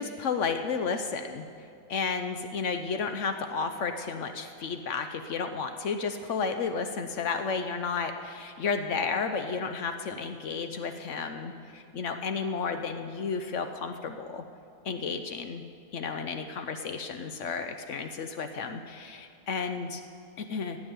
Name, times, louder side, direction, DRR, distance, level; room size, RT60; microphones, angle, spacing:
voice 1, 0.0-1.5 1.9-14.4 14.8-15.6 15.9-20.0 20.4-20.8, left 5 dB, 70° left, 7 dB, 0.7 m, -32 dB
16.5 x 6.2 x 9.2 m, 2.3 s
omnidirectional pair, 2.0 m